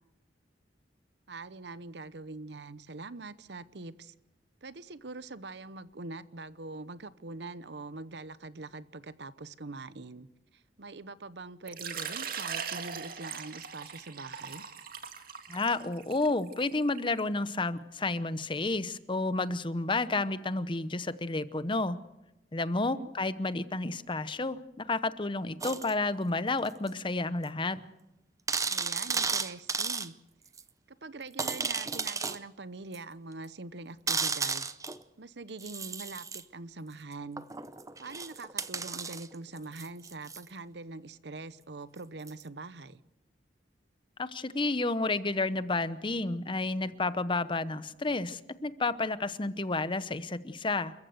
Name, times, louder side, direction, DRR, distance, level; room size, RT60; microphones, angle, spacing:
voice 1, 1.3-4.1 4.6-10.3 10.5-14.6 22.7-23.1 28.7-30.1 31.0-34.7 35.2-37.4 38.0-43.0, right 3 dB, 70° right, 16 dB, 0.9 m, -43 dB
Water / Liquid, 11.7-17.2, right 7 dB, 55° right, 2.0 m, -40 dB
voice 2, 15.5-22.0 22.5-27.8 44.2-50.9, left 3 dB, 30° left, 14 dB, 0.8 m, -31 dB
sound 1, 25.6-25.9 26.9-27.0 27.4-27.5 27.8-27.9 28.5-30.1 30.6-30.7 31.4-32.4 32.9-33.0 34.1-35.0 35.6-36.4 37.4-40.4 42.3-42.4, right 5 dB, 20° right, 0.7 m, -33 dB
28.5 x 14.5 x 8.0 m, 0.94 s
head